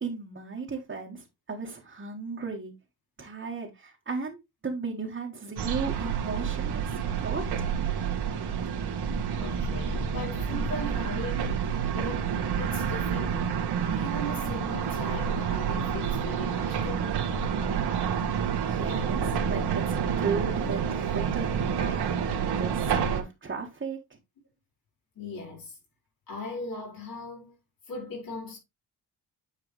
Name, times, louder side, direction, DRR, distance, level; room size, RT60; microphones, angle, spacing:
voice 1, 0.0-2.7 3.2-7.7 18.7-24.0, right 4 dB, 30° right, 1.7 m, -36 dB
sound 1, 5.6-23.2, right 7 dB, 80° right, 1.7 m, -29 dB
voice 2, 9.3-13.6 13.9-17.1 25.1-25.8 26.3-27.5 27.9-28.6, left 2 dB, 60° left, 4.8 m, -39 dB
9.7 x 4.7 x 3.3 m
cardioid pair, 130°, 39 cm